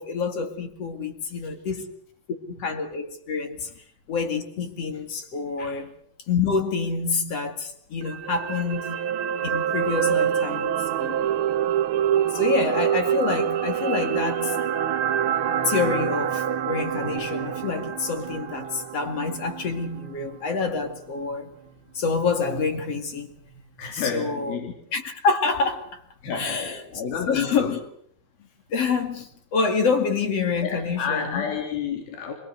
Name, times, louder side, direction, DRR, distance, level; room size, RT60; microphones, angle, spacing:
voice 1, 0.0-1.9 2.5-3.7 4.1-5.9 6.3-9.0 9.4-11.3 12.3-14.6 15.6-21.5 21.9-23.3 23.9-24.6 24.9-26.0 26.3-26.8 27.3-27.8 28.7-31.5, left 4 dB, 45° left, 2.9 m, -27 dB
sound 1, 8.0-20.3 20.7-20.8, right 9 dB, 85° right, 1.1 m, -26 dB
voice 2, 23.8-24.7 26.2-27.7 30.6-32.4, left 7 dB, 90° left, 5.0 m, -30 dB
26.0 x 19.0 x 8.1 m
omnidirectional pair, 4.1 m